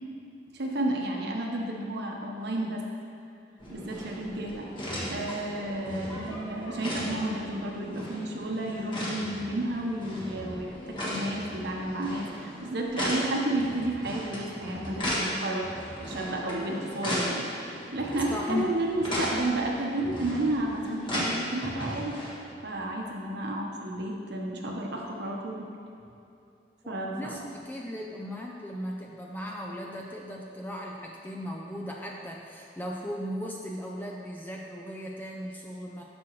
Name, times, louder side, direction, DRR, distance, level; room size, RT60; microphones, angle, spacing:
voice 1, 0.5-2.8 3.7-4.7 5.1-22.2 22.6-25.7 26.9-27.4, right 1 dB, 65° right, 0 dB, 0.9 m, -32 dB
sound 1, 3.6-22.3, equal, 25° left, 1.6 m, -36 dB
voice 2, 18.3-18.7 26.8-36.0, left 1 dB, 10° left, -1 dB, 0.4 m, -37 dB
9.6 x 6.1 x 3.1 m, 2.6 s
head